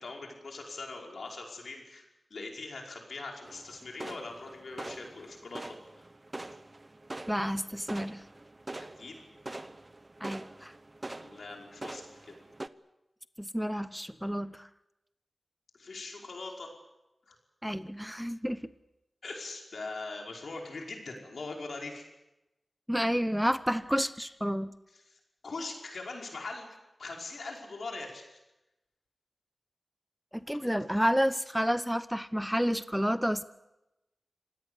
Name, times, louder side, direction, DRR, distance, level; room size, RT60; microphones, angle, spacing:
voice 1, 0.0-6.1 8.8-9.2 11.1-12.3 15.8-16.7 17.3-17.4 19.2-22.0 24.9-26.7 27.0-28.4 30.6-30.7, left 3 dB, 80° left, 1 dB, 5.3 m, -42 dB
sound 1, 3.4-12.7, right 2 dB, 30° right, 0.9 m, -44 dB
voice 2, 7.3-8.2 10.2-10.7 13.4-14.7 17.6-18.7 22.9-24.7 30.3-33.4, equal, ahead, 14 dB, 0.8 m, -30 dB
26.5 x 17.5 x 8.4 m, 0.96 s
wide cardioid pair, 60°, 0 cm